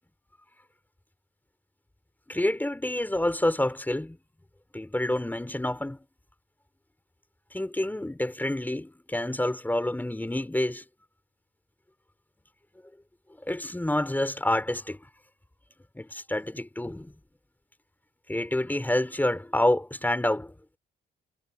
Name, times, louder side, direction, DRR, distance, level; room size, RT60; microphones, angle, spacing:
voice 1, 2.3-4.2 4.7-6.0 7.5-10.8 13.4-15.0 15.9-17.1 18.3-20.5, left 1 dB, 10° left, 4.6 m, -28 dB
cardioid pair, 90°, 20 cm